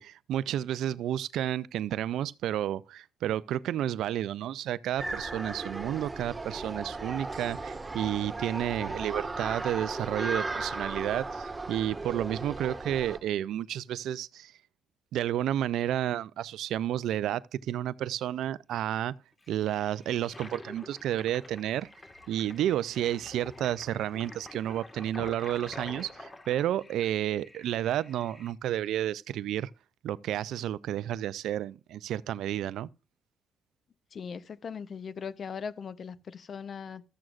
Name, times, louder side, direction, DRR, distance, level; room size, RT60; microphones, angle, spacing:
voice 1, 0.0-14.5 15.1-19.1 19.5-21.9 22.3-29.7 30.0-32.9, right 11 dB, 80° right, 0.4 m, -31 dB
sound 1, 5.0-13.2, right 3 dB, 20° right, 1.5 m, -36 dB
Toilet flush, 19.4-28.5, left 2 dB, 25° left, 1.6 m, -47 dB
voice 2, 34.1-37.0, left 6 dB, 50° left, 0.7 m, -39 dB
14.0 x 7.6 x 2.4 m
cardioid pair, 80°, 0 cm